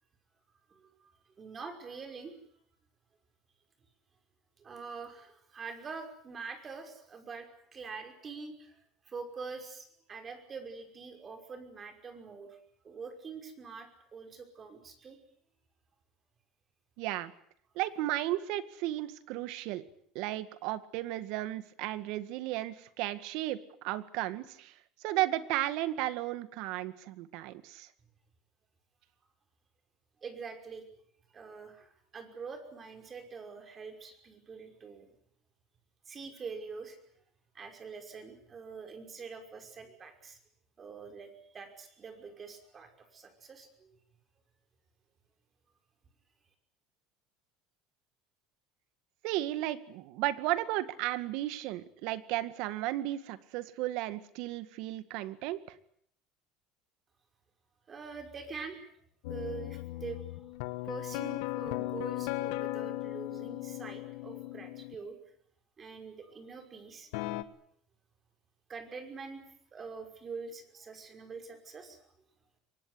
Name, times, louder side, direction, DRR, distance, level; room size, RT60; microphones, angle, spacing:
voice 1, 0.7-1.1 1.4-2.4 4.6-7.5 7.7-12.6 12.8-15.2 30.2-30.8 31.3-35.1 36.1-37.0 37.5-40.4 40.8-44.0 57.9-58.8 59.3-60.2 60.8-65.2 65.8-67.1 68.7-69.4 69.7-72.0, right 5 dB, 30° right, 6 dB, 5.6 m, -45 dB
voice 2, 17.0-17.3 17.8-19.8 20.2-24.7 25.0-27.9 49.2-55.6, right 15 dB, 70° right, 13 dB, 1.9 m, -34 dB
sound 1, 59.2-65.0 67.1-67.4, left 18 dB, 80° left, 1.5 m, -37 dB
24.0 x 19.5 x 9.8 m, 0.66 s
cardioid pair, 125°, 0 cm